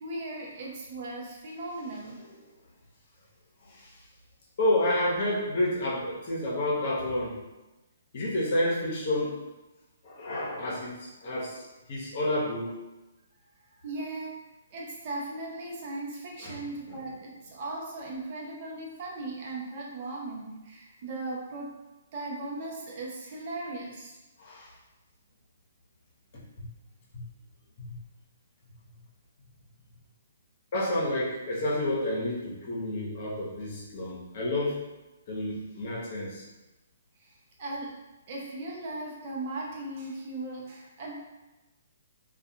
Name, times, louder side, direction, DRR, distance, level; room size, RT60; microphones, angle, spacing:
voice 1, 0.0-2.2 13.8-14.4 14.7-21.7 22.1-24.1 37.6-37.9 38.3-41.2, right 2 dB, 45° right, -3 dB, 0.7 m, -37 dB
voice 2, 4.6-7.4 8.1-9.4 10.0-11.6 11.9-12.7 16.4-17.1 24.4-24.7 26.3-26.7 27.1-27.3 27.8-28.0 30.7-34.8 35.3-36.4, left 1 dB, 50° left, -5 dB, 0.8 m, -30 dB
2.4 x 2.3 x 2.7 m, 1.1 s
hypercardioid pair, 135°, 0 cm